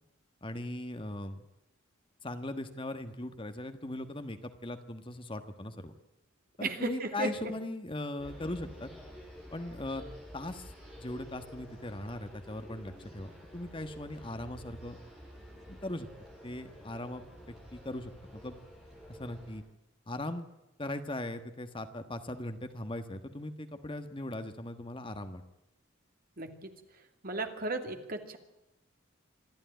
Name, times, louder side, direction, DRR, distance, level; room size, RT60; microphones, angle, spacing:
voice 1, 0.4-1.4 2.2-5.9 6.6-8.9 9.5-10.0 10.3-15.0 15.7-16.1 16.4-17.2 17.7-18.5 19.1-19.6 20.1-20.5 20.8-25.4, left 1 dB, 25° left, 8 dB, 1.4 m, -39 dB
voice 2, 6.6-7.3 26.4-26.7 27.2-28.4, right 2 dB, 45° right, 5 dB, 2.7 m, -35 dB
sound 1, 8.2-19.6, equal, ahead, 8.0 m, -50 dB
27.0 x 12.0 x 9.1 m, 0.96 s
head